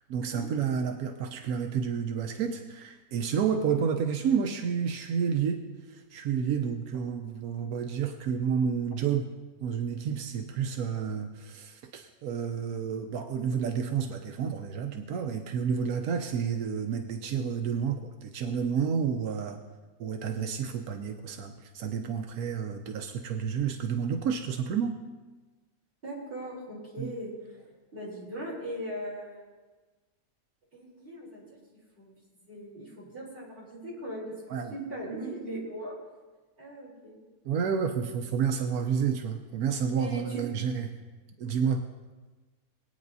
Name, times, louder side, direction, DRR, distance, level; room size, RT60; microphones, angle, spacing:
voice 1, 0.1-5.6 5.9-9.3 9.6-19.6 20.0-25.0 27.0-27.1 34.5-34.7 37.4-40.9 41.4-41.9, right 7 dB, 90° right, 5 dB, 1.2 m, -30 dB
voice 2, 26.0-29.5 30.7-31.4 32.0-32.1 32.5-34.3 34.7-35.9 36.6-37.2 40.0-40.4, right 1 dB, 40° right, -6 dB, 4.1 m, -39 dB
21.0 x 9.0 x 2.7 m, 1.3 s
omnidirectional pair, 1.5 m